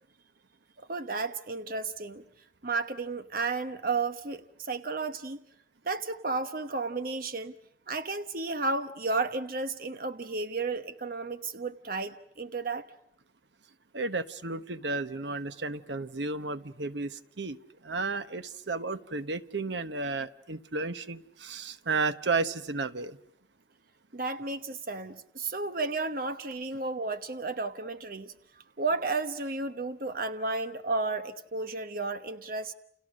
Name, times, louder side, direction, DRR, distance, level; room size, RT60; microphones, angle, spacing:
voice 1, 0.8-2.2 2.6-5.4 5.8-7.5 7.9-12.9 24.1-28.3 28.8-32.7, right 3 dB, 50° right, 1.1 m, -33 dB
voice 2, 13.9-23.2, right 3 dB, 80° right, 1.1 m, -33 dB
29.5 x 29.0 x 6.4 m
head